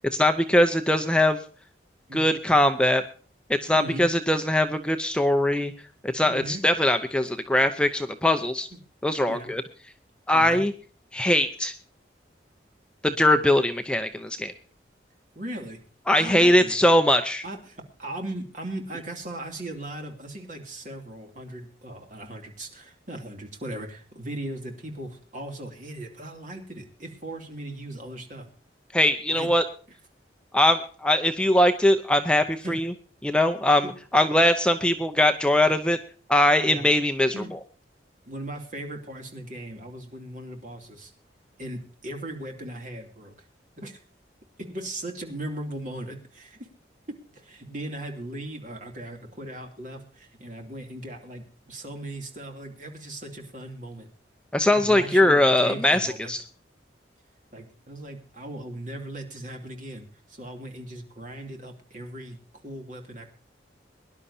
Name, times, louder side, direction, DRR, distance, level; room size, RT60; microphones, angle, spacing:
voice 1, 0.1-1.4 2.1-3.0 3.5-5.7 6.0-8.7 9.0-9.6 10.3-10.7 11.1-11.7 13.0-14.5 16.1-17.4 28.9-29.6 30.5-32.9 33.2-36.0 36.3-37.6 54.5-56.4, left 1 dB, 5° left, 6 dB, 0.7 m, -21 dB
voice 2, 3.7-4.1 6.2-6.6 9.3-9.5 10.3-10.6 15.3-15.8 16.2-16.8 17.4-28.5 29.3-29.5 32.6-32.8 33.8-33.9 34.2-34.3 36.7-36.8 37.3-37.5 38.2-41.1 41.6-43.3 43.8-44.0 44.6-46.7 47.1-54.1 54.7-56.3 57.5-63.3, right 1 dB, 45° right, 3 dB, 2.7 m, -38 dB
23.0 x 11.0 x 2.7 m, 0.39 s
head